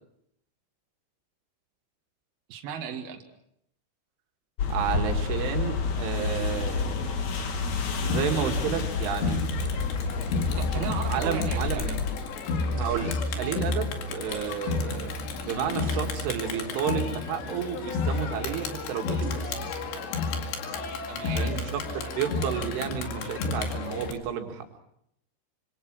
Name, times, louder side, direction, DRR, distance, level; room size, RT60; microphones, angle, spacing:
voice 1, 2.5-3.2 10.6-12.0 21.1-21.6, right 8 dB, 60° right, 3 dB, 3.5 m, -36 dB
sound 1, 4.6-12.2, left 4 dB, 50° left, 2.6 m, -30 dB
voice 2, 4.7-6.9 8.0-9.4 11.1-12.0 12.7-15.1 15.4-19.5 21.4-24.7, right 8 dB, 85° right, 4 dB, 4.5 m, -31 dB
Crowd, 8.1-24.1, left 3 dB, 70° left, 4.3 m, -31 dB
sound 2, 11.2-11.9 12.6-13.3 14.2-14.8 15.7-16.2 16.4-17.0 17.8-18.4 19.2-19.7, right 1 dB, 10° right, 7.5 m, -43 dB
26.5 x 25.0 x 6.3 m, 0.74 s
omnidirectional pair, 5.5 m